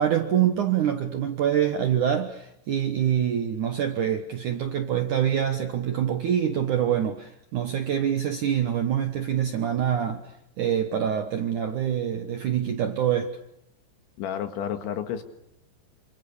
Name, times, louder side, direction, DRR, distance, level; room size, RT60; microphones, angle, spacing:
voice 1, 0.0-10.3 10.6-13.4, right 9 dB, 70° right, 1.9 m, -25 dB
voice 2, 14.2-15.2, left 9 dB, 80° left, 4.1 m, -30 dB
27.5 x 27.0 x 6.8 m
omnidirectional pair, 5.3 m